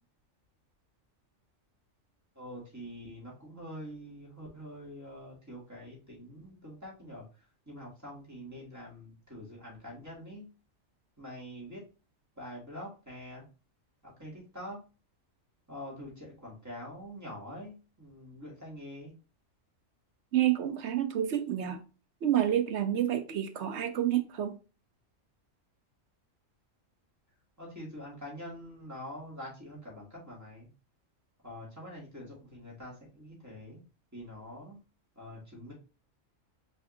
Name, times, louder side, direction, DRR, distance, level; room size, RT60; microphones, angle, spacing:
voice 1, 2.3-10.5 11.2-11.8 12.4-13.4 14.0-14.8 15.7-19.1 27.6-30.7 31.4-33.8 34.1-34.8 35.2-35.7, equal, 15° right, 2.3 m, -45 dB
voice 2, 20.3-21.8 22.2-24.6, right 11 dB, 65° right, 0.9 m, -29 dB
5.2 x 3.3 x 2.6 m
omnidirectional pair, 1.3 m